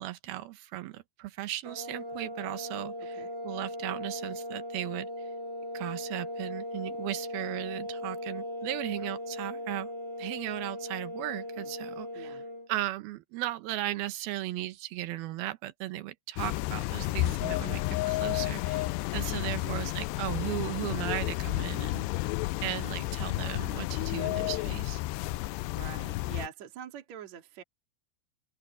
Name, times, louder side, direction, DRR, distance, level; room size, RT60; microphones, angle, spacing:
voice 1, 0.0-5.1 5.7-9.9 10.2-12.4 12.7-17.8 18.1-22.1 22.6-25.0, right 15 dB, 70° right, 2.5 m, -36 dB
sound 1, 1.6-12.7, left 1 dB, 20° right, 0.8 m, -38 dB
sound 2, 16.4-26.5, left 19 dB, 85° left, 2.4 m, -31 dB
voice 2, 19.6-19.9 25.6-27.6, right 8 dB, 45° right, 2.7 m, -45 dB
open air
omnidirectional pair, 5.4 m